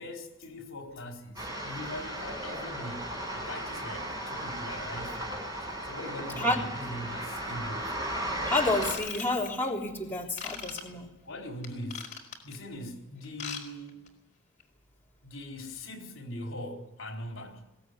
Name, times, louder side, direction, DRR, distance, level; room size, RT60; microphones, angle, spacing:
voice 1, 0.0-5.6 5.8-7.9 11.3-12.1 12.4-14.1 15.2-17.6, left 1 dB, 70° left, 2 dB, 4.3 m, -41 dB
sound 1, 1.4-9.0, right 1 dB, 20° right, 6.7 m, -36 dB
voice 2, 8.5-11.1, left 2 dB, 10° left, -3 dB, 3.6 m, -29 dB
Ratchet pawl / Tools, 8.8-9.7 10.4-10.8 11.6-12.6 13.2-13.6 13.9-14.1 14.6-14.7, left 6 dB, 40° left, 4.5 m, -39 dB
22.0 x 17.0 x 9.6 m, 0.89 s
head